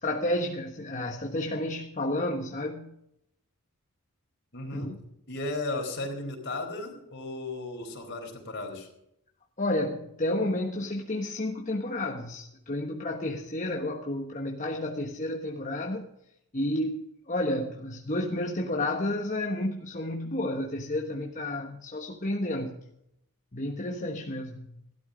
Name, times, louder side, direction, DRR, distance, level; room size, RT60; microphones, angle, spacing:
voice 1, 0.0-2.9 4.7-4.9 9.6-16.1 16.5-22.8 23.5-24.8, left 1 dB, 35° left, 1.2 m, -31 dB
voice 2, 4.5-4.9 5.3-8.9, left 2 dB, 50° left, 4.1 m, -35 dB
16.0 x 12.5 x 5.1 m
head